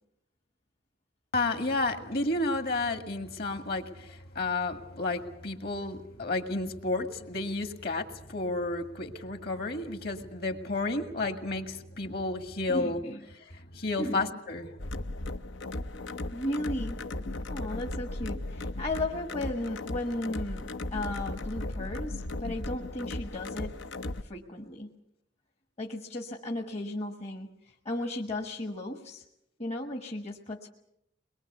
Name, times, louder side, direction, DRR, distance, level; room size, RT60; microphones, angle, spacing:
voice 1, 1.3-13.0 13.4-14.8, left 2 dB, 50° left, 6 dB, 2.0 m, -31 dB
voice 2, 12.7-13.2 14.0-14.3 16.3-17.0 17.5-23.7 24.2-24.9 25.8-29.2 29.6-30.7, left 1 dB, 35° left, 3 dB, 1.2 m, -35 dB
sound 1, 14.8-24.2, left 2 dB, 70° left, 0.8 m, -36 dB
22.5 x 22.0 x 6.9 m, 0.78 s
head